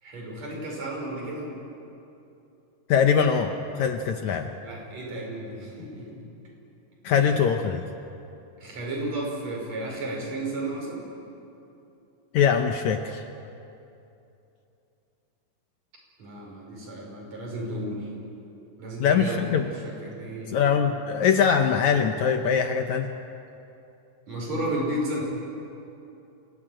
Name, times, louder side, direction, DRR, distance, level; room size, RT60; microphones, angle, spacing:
voice 1, 0.0-1.5 4.6-6.1 7.1-7.3 8.6-11.1 16.2-18.1 18.8-20.6 24.3-25.3, right 1 dB, 50° right, -2 dB, 7.0 m, -33 dB
voice 2, 2.9-4.5 7.0-7.8 12.3-13.2 19.0-19.7 20.5-23.1, left 7 dB, 70° left, 6 dB, 2.0 m, -22 dB
28.0 x 18.5 x 9.0 m, 2.8 s
omnidirectional pair, 3.9 m